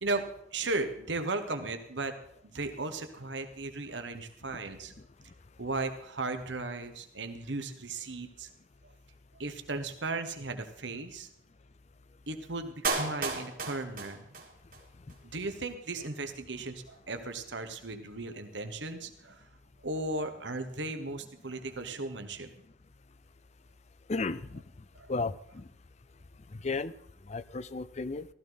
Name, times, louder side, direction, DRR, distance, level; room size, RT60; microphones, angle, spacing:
voice 1, 0.0-2.1 2.4-5.0 5.6-8.5 9.4-11.3 12.3-14.3 15.2-19.4 19.8-22.5, right 3 dB, 75° right, 7 dB, 1.4 m, -36 dB
Clapping, 12.8-14.8 15.1-15.2, right 3 dB, 50° right, 2.2 m, -33 dB
voice 2, 24.1-24.6 25.1-25.6 26.6-26.9 27.3-28.3, left 3 dB, 35° left, 16 dB, 0.5 m, -33 dB
15.0 x 14.0 x 4.0 m, 0.69 s
head